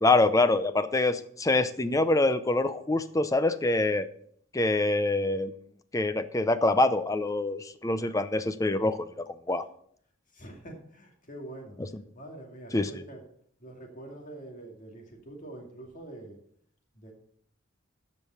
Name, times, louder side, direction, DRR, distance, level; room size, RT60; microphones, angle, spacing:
voice 1, 0.0-4.1 4.5-5.5 5.9-9.6 11.8-12.0 12.7-12.9, left 2 dB, 15° left, 11 dB, 0.6 m, -25 dB
voice 2, 10.3-11.8 12.1-13.2 13.6-16.4 16.9-17.1, right 1 dB, 40° left, 1 dB, 2.3 m, -45 dB
13.5 x 5.3 x 5.7 m, 0.64 s
head